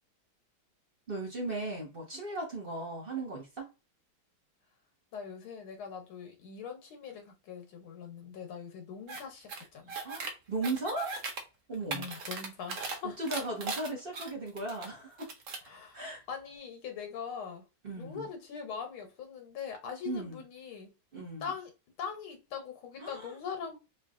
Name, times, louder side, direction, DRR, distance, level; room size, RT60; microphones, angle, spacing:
voice 1, 1.1-3.7 10.0-11.2 11.7-12.1 13.2-15.3 15.9-16.2 17.8-18.2 20.0-20.4 21.1-21.5 23.0-23.3, right 2 dB, 30° right, 1.4 m, -37 dB
voice 2, 5.1-10.0 11.9-13.3 15.6-17.7 18.0-20.9 21.4-21.7 22.0-23.8, left 6 dB, 85° left, 1.8 m, -42 dB
sound 1, 9.1-9.2 9.5-10.3 10.6-11.4 11.7-13.0 13.3-14.9 15.2-15.7, right 4 dB, 55° right, 0.9 m, -38 dB
4.2 x 2.9 x 2.5 m
omnidirectional pair, 2.2 m